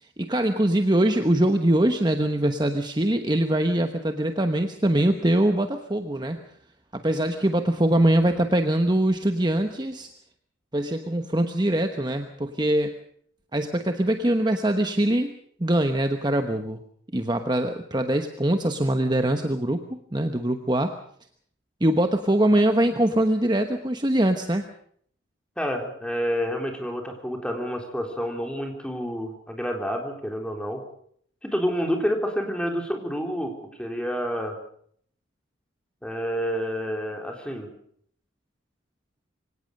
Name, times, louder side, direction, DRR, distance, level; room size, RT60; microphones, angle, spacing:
voice 1, 0.2-6.4 6.9-10.1 10.7-12.9 13.5-15.3 15.6-16.8 17.1-20.9 21.8-24.7, right 1 dB, 20° right, 6 dB, 1.1 m, -23 dB
voice 2, 25.6-30.8 31.4-33.5 33.8-34.6 36.0-37.7, equal, 5° left, 3 dB, 3.6 m, -28 dB
24.0 x 18.0 x 6.6 m, 0.63 s
head